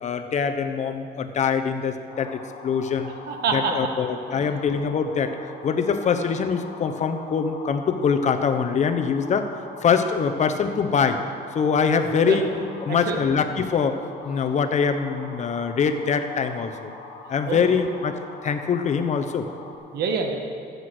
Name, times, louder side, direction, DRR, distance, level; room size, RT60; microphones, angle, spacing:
voice 1, 0.0-3.1 3.5-5.4 5.6-9.5 9.8-11.2 11.5-12.5 12.8-14.0 14.2-16.9 17.3-18.1 18.4-19.5, left 6 dB, 45° left, 8 dB, 1.0 m, -23 dB
sound 1, 2.1-19.8, left 4 dB, 60° left, 2.4 m, -43 dB
voice 2, 3.0-3.9 4.3-4.4 12.3-12.4 12.9-13.2 17.5-17.6 19.9-20.4, right 5 dB, 70° right, 4 dB, 1.7 m, -26 dB
15.0 x 8.1 x 6.1 m, 2.5 s
cardioid pair, 110°, 17 cm